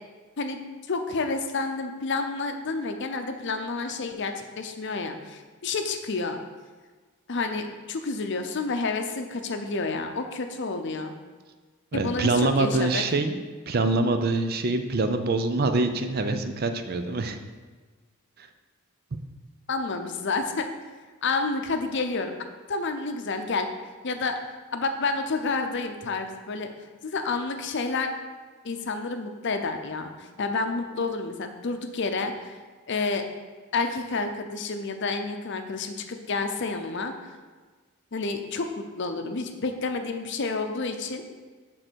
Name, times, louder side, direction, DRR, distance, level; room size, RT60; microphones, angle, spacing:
voice 1, 0.9-6.4 7.3-11.1 11.9-13.0 19.7-20.7 21.2-22.4 22.7-23.7 24.0-24.4 24.7-26.7 27.0-28.1 28.6-32.6 32.9-33.3 33.7-37.1 38.1-41.2, left 3 dB, 55° left, 6 dB, 0.6 m, -29 dB
voice 2, 11.9-13.4 13.7-17.4 18.4-18.5, right 3 dB, 45° right, 7 dB, 0.5 m, -25 dB
6.7 x 3.8 x 6.2 m, 1.4 s
head